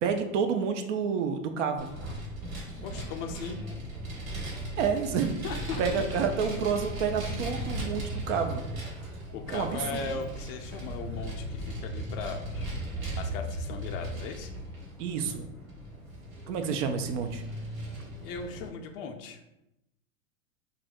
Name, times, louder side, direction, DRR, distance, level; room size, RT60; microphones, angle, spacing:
voice 1, 0.0-1.9 4.8-5.3 5.8-8.6 9.5-10.0 15.0-15.5 16.5-17.4, right 6 dB, 60° right, 6 dB, 0.5 m, -29 dB
Vehicle, 1.8-18.7, right 1 dB, 80° right, 1.2 m, -37 dB
voice 2, 2.8-3.6 5.4-6.0 9.3-12.7 13.1-14.5 18.2-19.4, left 5 dB, 45° left, 5 dB, 0.4 m, -38 dB
2.7 x 2.4 x 3.5 m, 0.88 s
hypercardioid pair, 95°, 41 cm